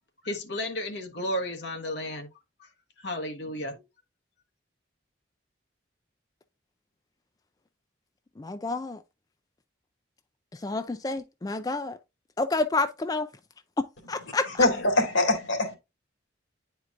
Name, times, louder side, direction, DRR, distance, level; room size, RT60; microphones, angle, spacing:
voice 1, 0.2-2.3 2.6-2.7 3.0-3.8, left 1 dB, 60° left, 1.2 m, -33 dB
voice 2, 8.4-9.0 10.6-12.0 12.4-13.3 14.1-14.5, left 3 dB, 20° left, 0.3 m, -29 dB
voice 3, 14.6-15.8, left 2 dB, 85° left, 2.1 m, -23 dB
9.4 x 4.5 x 2.5 m
head